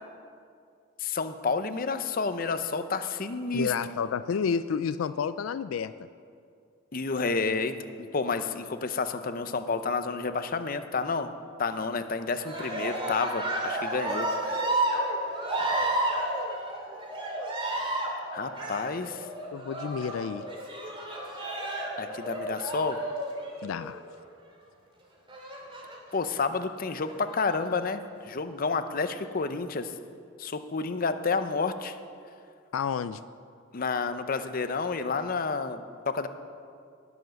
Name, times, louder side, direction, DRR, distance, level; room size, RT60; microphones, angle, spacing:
voice 1, 1.0-3.7 6.9-11.3 11.6-14.6 18.3-19.3 22.0-23.0 26.1-28.0 28.3-29.9 30.4-32.0 33.7-36.3, left 4 dB, 45° left, 10 dB, 0.6 m, -30 dB
voice 2, 3.5-5.9 19.5-20.5 23.6-24.0 32.7-33.2, left 6 dB, 85° left, 13 dB, 0.4 m, -30 dB
Cheering, 12.3-24.0 25.3-26.2 26.9-27.5, right 1 dB, 25° right, 2.3 m, -32 dB
18.5 x 7.1 x 6.4 m, 2.3 s
head